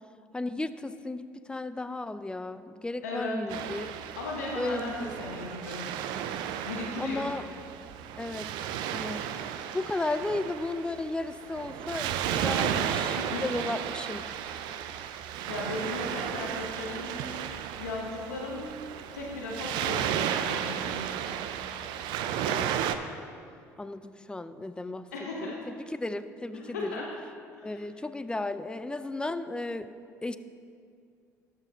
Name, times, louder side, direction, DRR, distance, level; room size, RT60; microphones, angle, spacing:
voice 1, 0.3-4.0 4.6-5.1 7.0-7.5 8.2-9.3 9.7-14.3 22.5-22.7 23.8-25.1 25.4-27.0 27.6-29.9 30.2-30.4, left 2 dB, 10° left, 13 dB, 0.4 m, -34 dB
voice 2, 3.0-3.4 4.2-5.9 6.6-7.3 13.2-13.5 15.5-17.4 17.8-18.7 19.1-21.1 25.1-25.6 26.7-27.1 27.5-27.8, left 2 dB, 85° left, -2 dB, 0.9 m, -36 dB
Waves surf, 3.5-23.0, right 9 dB, 65° right, 0.4 m, -34 dB
12.5 x 4.6 x 3.6 m, 2.3 s
hypercardioid pair, 60°, 8 cm